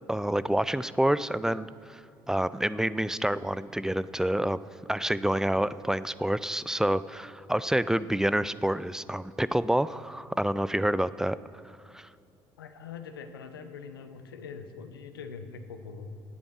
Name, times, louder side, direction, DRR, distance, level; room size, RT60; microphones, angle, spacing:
voice 1, 0.1-2.0 2.3-4.6 4.9-11.4 11.9-12.1, right 1 dB, 5° right, 16 dB, 0.5 m, -28 dB
voice 2, 12.6-16.2, left 5 dB, 85° left, 8 dB, 1.0 m, -43 dB
17.5 x 8.6 x 6.3 m, 2.6 s
hypercardioid pair, 55°, 12 cm